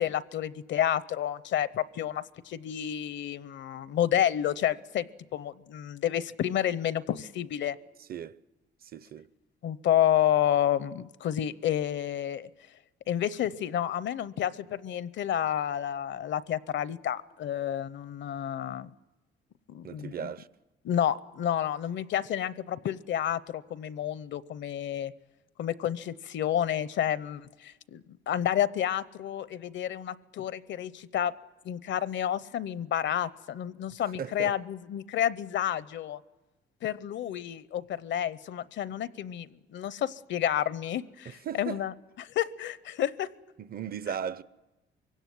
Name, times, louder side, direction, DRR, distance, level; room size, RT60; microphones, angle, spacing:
voice 1, 0.0-5.1 5.3-7.8 9.6-12.5 13.1-18.9 19.7-20.3 20.8-25.1 25.6-31.3 31.6-36.2 36.8-41.9 42.2-43.3, left 10 dB, 70° left, 0.8 m, -30 dB
voice 2, 8.0-8.4 8.8-9.3 19.8-20.5 34.1-34.5 41.3-41.8 43.6-44.4, right 8 dB, 50° right, 0.7 m, -37 dB
23.5 x 17.0 x 9.4 m
cardioid pair, 90°, 20 cm